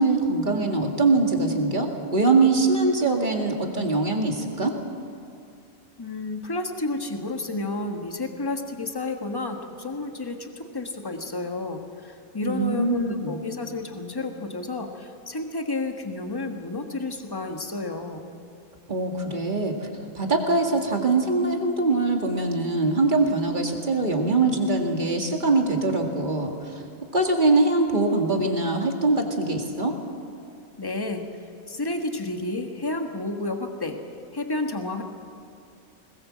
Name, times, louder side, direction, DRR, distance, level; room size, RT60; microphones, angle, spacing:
voice 1, 0.0-4.7 12.5-13.4 18.9-19.9 20.1-26.8 27.1-29.9, right 3 dB, 35° right, 2 dB, 2.3 m, -23 dB
voice 2, 6.0-18.3 30.8-31.3 31.7-34.0 34.3-35.0, left 2 dB, 15° left, 4 dB, 1.5 m, -31 dB
21.0 x 20.0 x 7.5 m, 2.4 s
omnidirectional pair, 1.5 m